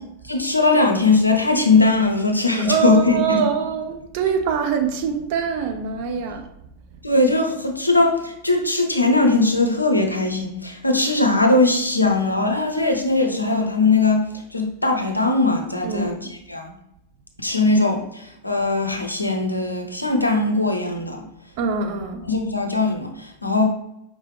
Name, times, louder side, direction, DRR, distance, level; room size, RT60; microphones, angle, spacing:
voice 1, 0.2-3.5 7.0-16.2 16.5-16.7 17.4-21.3 22.3-23.7, left 3 dB, 85° left, 0.7 m, -20 dB
voice 2, 2.6-6.5 15.8-16.3 21.6-22.3, right 7 dB, 50° right, 0.6 m, -24 dB
5.2 x 3.2 x 3.1 m
figure-of-eight pair, 90°, 0 cm